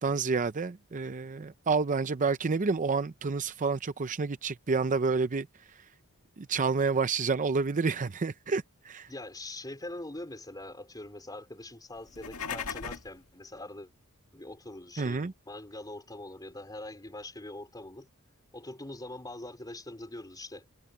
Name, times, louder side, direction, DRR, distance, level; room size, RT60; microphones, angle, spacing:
voice 1, 0.0-5.5 5.7-5.8 6.4-9.1 15.0-15.3, right 4 dB, 35° right, 0.6 m, -29 dB
voice 2, 9.1-13.9 14.3-18.1 18.5-20.7, left 1 dB, 20° left, 4.1 m, -43 dB
sound 1, 12.0-13.2, left 6 dB, 70° left, 2.1 m, -37 dB
head